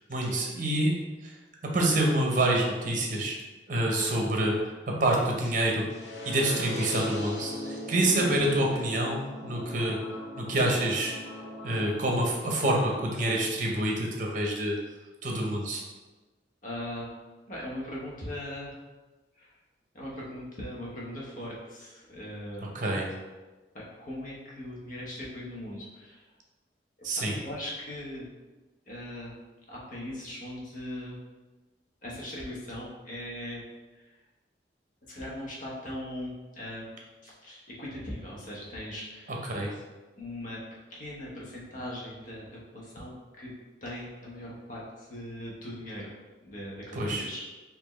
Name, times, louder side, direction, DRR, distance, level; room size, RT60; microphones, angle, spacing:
voice 1, 0.1-1.3 1.7-3.4 3.7-5.9 6.2-11.1 11.6-14.8 15.2-15.9 22.7-23.0 27.0-27.4 39.3-39.7 46.9-47.3, right 1 dB, 45° right, -1 dB, 0.8 m, -27 dB
sound 1, 5.9-11.9, left 1 dB, 90° left, 0.7 m, -38 dB
voice 2, 16.6-17.1 17.5-18.7 19.4-19.6 19.9-22.7 23.7-26.2 27.2-28.2 28.9-29.3 29.7-31.2 32.0-33.6 33.9-34.1 35.1-36.9 37.2-39.4 40.2-40.6 40.9-43.5 43.8-46.1 46.4-47.4, left 1 dB, 50° left, -5 dB, 1.0 m, -39 dB
4.2 x 2.8 x 3.0 m, 1.2 s
head